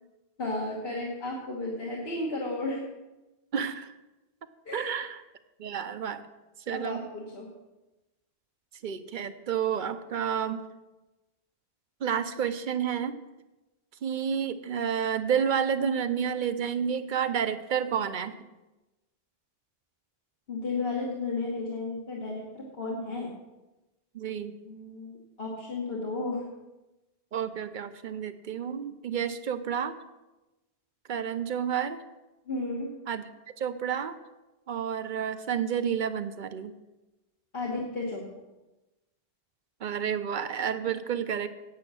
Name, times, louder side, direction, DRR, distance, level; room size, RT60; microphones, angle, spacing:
voice 1, 0.4-2.8 4.6-5.0 6.7-7.5 20.5-23.3 24.6-26.4 32.5-32.9 37.5-38.2, left 2 dB, 65° left, -2 dB, 1.6 m, -33 dB
voice 2, 3.5-4.0 4.7-5.2 5.6-6.2 6.7-7.0 8.8-10.6 12.0-13.2 14.0-18.4 24.1-24.6 27.3-30.0 31.1-32.0 33.1-33.3 33.6-34.2 34.7-36.7 39.8-41.5, right 8 dB, 55° right, 11 dB, 0.7 m, -30 dB
8.5 x 8.5 x 6.2 m, 1.1 s
omnidirectional pair, 1.0 m